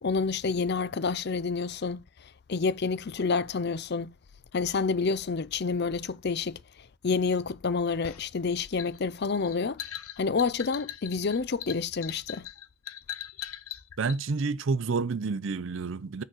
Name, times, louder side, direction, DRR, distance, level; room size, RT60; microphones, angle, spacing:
voice 1, 0.0-4.1 4.5-9.8 10.2-12.5, left 4 dB, 50° left, 0.5 m, -29 dB
sound 1, 8.0-14.2, left 11 dB, 80° left, 0.8 m, -40 dB
voice 2, 14.0-16.2, right 4 dB, 60° right, 0.5 m, -29 dB
6.5 x 3.9 x 6.2 m
head